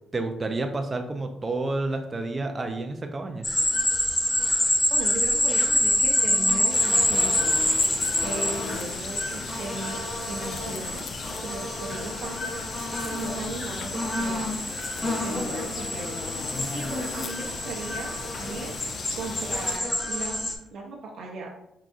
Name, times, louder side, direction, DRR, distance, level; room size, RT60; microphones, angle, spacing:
voice 1, 0.1-3.5, right 2 dB, 25° right, 4 dB, 0.4 m, -30 dB
sound 1, 3.4-20.5, left 1 dB, 20° left, 0.8 m, -27 dB
voice 2, 4.9-7.5 8.2-10.0 10.3-11.0 11.4-12.6 13.0-14.5 15.2-21.5, right 3 dB, 65° right, -1 dB, 0.6 m, -37 dB
sound 2, 6.7-19.8, left 5 dB, 55° left, 0.4 m, -37 dB
4.7 x 3.6 x 2.4 m, 0.82 s
cardioid pair, 90°, 0 cm